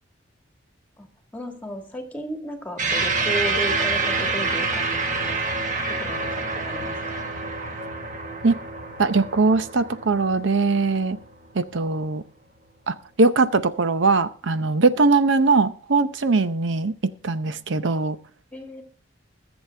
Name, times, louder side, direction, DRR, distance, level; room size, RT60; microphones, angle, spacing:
voice 1, 1.0-5.4 5.9-7.0 18.5-18.8, right 1 dB, 10° left, 4 dB, 1.7 m, -34 dB
sound 1, 2.8-11.5, right 3 dB, 40° right, 1.4 m, -27 dB
voice 2, 9.0-11.2 11.5-12.2 12.9-16.9 17.2-18.2, right 3 dB, 75° right, 12 dB, 0.7 m, -21 dB
21.5 x 7.2 x 3.3 m, 0.42 s
head